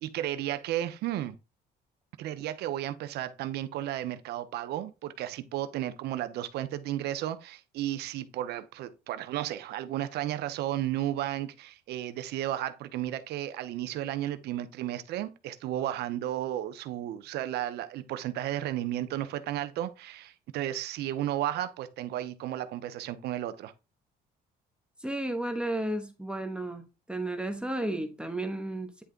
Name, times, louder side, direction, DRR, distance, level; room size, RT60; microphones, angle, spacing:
voice 1, 0.0-1.4 2.2-23.7, right 12 dB, 75° right, 0.8 m, -33 dB
voice 2, 25.0-26.8 27.1-29.0, right 1 dB, 5° right, 1.0 m, -33 dB
9.7 x 3.3 x 3.8 m
cardioid pair, 110°, 17 cm